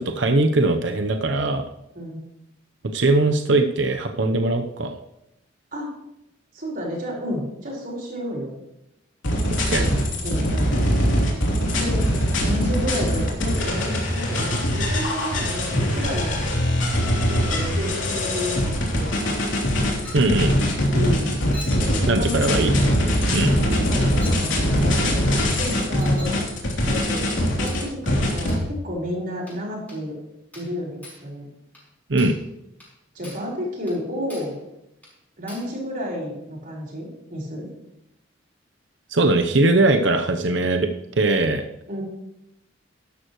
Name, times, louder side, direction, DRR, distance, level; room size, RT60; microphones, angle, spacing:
voice 1, 0.0-1.7 2.9-5.0 9.5-9.8 20.1-20.6 22.1-22.7 23.3-23.6 32.1-32.4 39.1-41.6, right 2 dB, 70° right, 6 dB, 0.8 m, -20 dB
voice 2, 6.5-8.5 9.7-10.8 11.7-12.0 12.4-16.4 17.3-19.4 20.9-21.4 21.8-22.8 23.5-26.4 26.8-28.6 28.8-30.1 30.5-31.5 33.1-34.5 35.4-37.7 41.9-42.0, equal, 50° right, -3 dB, 4.7 m, -31 dB
sound 1, 9.2-28.6, equal, 80° left, 3.2 m, -22 dB
Chink clink, 20.0-20.4 21.5-21.9 22.9-23.1 24.2-24.5 26.0-26.4 27.7-27.9 28.5-28.7 29.5-29.6 29.9-30.0 30.5-30.8 31.0-31.3 31.7-31.9 32.2-32.5 32.8-32.9 33.2-33.5 33.9-34.0 34.3-34.6 35.0-35.1 35.5-35.7, left 1 dB, 10° left, 4.5 m, -42 dB
13.0 x 11.5 x 3.1 m, 0.85 s
head